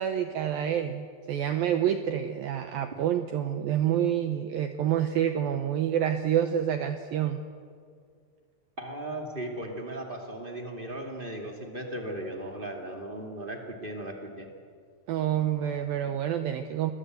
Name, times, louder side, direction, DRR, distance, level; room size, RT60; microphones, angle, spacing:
voice 1, 0.0-7.4 15.1-16.9, right 10 dB, 90° right, 7 dB, 2.0 m, -28 dB
voice 2, 8.8-14.5, right 1 dB, 40° right, 1 dB, 0.7 m, -37 dB
28.0 x 21.5 x 8.1 m, 2.2 s
omnidirectional pair, 5.4 m